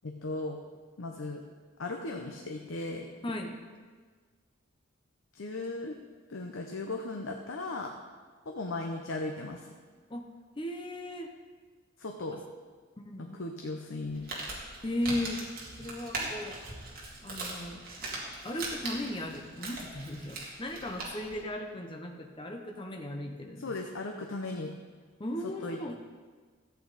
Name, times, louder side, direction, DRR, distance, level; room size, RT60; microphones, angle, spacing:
voice 1, 0.0-0.6 1.0-1.4 1.8-3.1 5.3-6.0 6.3-8.0 8.5-9.7 12.0-12.4 13.2-14.3 23.6-24.7 25.6-25.8, left 2 dB, 70° left, 3 dB, 0.8 m, -37 dB
voice 2, 3.2-3.6 10.1-10.3 10.6-11.3 13.0-13.4 14.8-15.5 15.8-16.6 17.2-18.1 18.4-23.7 25.2-26.0, left 1 dB, 25° left, 3 dB, 0.8 m, -37 dB
Crumpling crinkling, 14.0-21.4, right 2 dB, 45° right, 2.2 m, -40 dB
14.0 x 8.5 x 4.1 m, 1.5 s
head